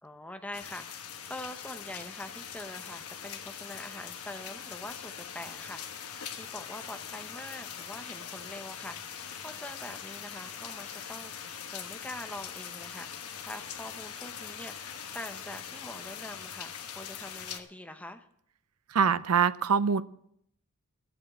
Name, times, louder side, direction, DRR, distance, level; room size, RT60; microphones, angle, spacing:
voice 1, 0.0-13.1 13.4-18.3, left 1 dB, 5° left, 6 dB, 0.9 m, -44 dB
sound 1, 0.5-17.6, left 8 dB, 80° left, 1.2 m, -42 dB
voice 2, 18.9-20.0, right 6 dB, 75° right, 16 dB, 0.6 m, -24 dB
13.0 x 8.0 x 7.5 m, 0.70 s
head